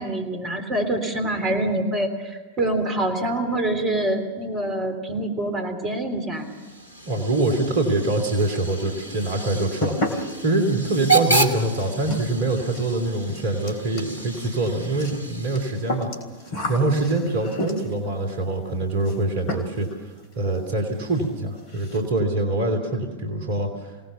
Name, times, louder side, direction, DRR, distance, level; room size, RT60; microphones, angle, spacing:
voice 1, 0.0-6.5, right 1 dB, 25° right, 6 dB, 3.4 m, -25 dB
Hiss / Train / Alarm, 6.4-16.0, right 3 dB, 80° left, 1.6 m, -30 dB
voice 2, 7.1-16.1 16.7-23.9, right 2 dB, 55° right, 6 dB, 3.0 m, -24 dB
sound 1, 8.4-8.9 9.2-18.1 19.0-19.2 19.5-20.0 20.2-20.3 20.7-20.8 21.1-21.3 21.6-22.1, left 1 dB, 50° left, 3.4 m, -33 dB
25.5 x 18.5 x 7.0 m, 1.3 s
figure-of-eight pair, 90°, 0 cm